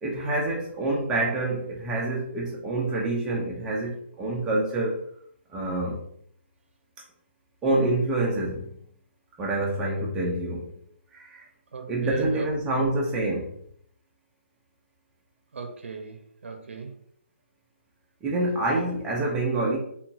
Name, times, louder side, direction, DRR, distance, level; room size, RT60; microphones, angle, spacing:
voice 1, 0.0-5.0 5.5-6.0 7.6-8.7 9.4-10.7 11.1-11.4 11.9-13.5 18.2-19.8, right 2 dB, 10° right, -2 dB, 0.4 m, -27 dB
voice 2, 11.7-12.8 15.5-16.9, right 4 dB, 75° right, 5 dB, 0.5 m, -39 dB
2.8 x 2.2 x 2.6 m, 0.65 s
hypercardioid pair, 165°, 7 cm